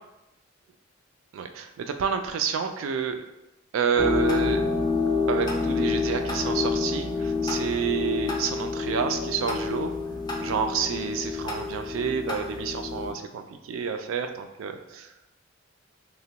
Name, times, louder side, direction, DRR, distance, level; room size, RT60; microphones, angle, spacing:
voice 1, 1.3-3.2 3.7-4.6 5.3-9.9 10.4-15.1, right 6 dB, 85° right, 7 dB, 0.3 m, -29 dB
sound 1, 4.0-13.1, left 4 dB, 20° left, 0.3 m, -28 dB
2.9 x 2.1 x 2.8 m, 0.90 s
head